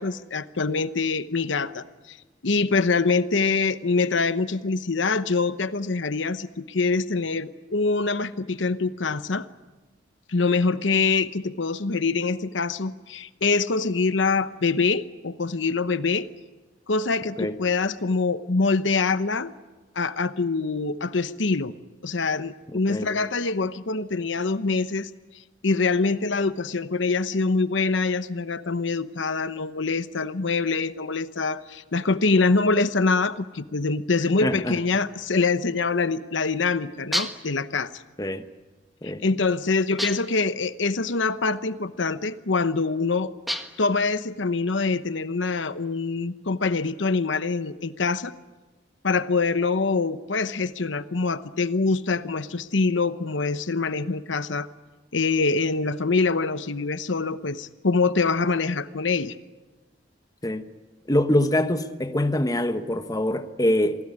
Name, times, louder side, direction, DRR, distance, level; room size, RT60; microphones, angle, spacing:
voice 1, 0.0-2.2 2.4-9.4 10.3-16.3 16.9-19.5 19.9-21.7 22.0-25.1 25.6-38.0 39.2-43.3 43.8-48.3 49.0-54.7 55.1-59.4, left 4 dB, 75° left, 1.0 m, -24 dB
voice 2, 22.7-23.1 34.4-34.8 38.2-38.4 39.0-39.2 60.4-60.6 61.1-64.0, left 1 dB, 20° left, 1.2 m, -24 dB
sound 1, 37.1-37.6 40.0-40.4 43.5-43.9, equal, ahead, 1.6 m, -30 dB
27.5 x 18.5 x 9.7 m
head